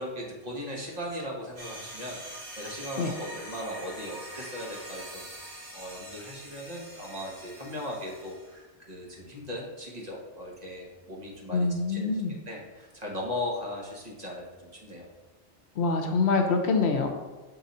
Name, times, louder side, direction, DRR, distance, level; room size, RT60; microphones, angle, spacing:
voice 1, 0.0-15.0, left 1 dB, 35° right, -2 dB, 1.3 m, -38 dB
sound 1, 1.6-8.6, right 1 dB, 65° right, 2.0 m, -44 dB
voice 2, 11.5-12.3 15.8-17.1, left 4 dB, 70° left, 5 dB, 1.0 m, -25 dB
6.1 x 3.9 x 4.1 m, 1.2 s
omnidirectional pair, 1.2 m